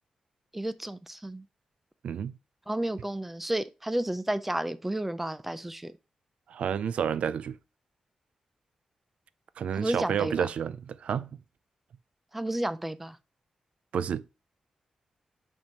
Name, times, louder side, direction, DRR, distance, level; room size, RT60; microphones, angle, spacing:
voice 1, 0.5-1.4 2.7-5.9 9.8-10.5 12.3-13.2, right 1 dB, 10° right, 0.4 m, -31 dB
voice 2, 2.0-2.4 6.5-7.6 9.6-11.3 13.9-14.2, right 8 dB, 75° right, 0.4 m, -30 dB
5.4 x 5.3 x 4.5 m
wide cardioid pair, 130°, 2 cm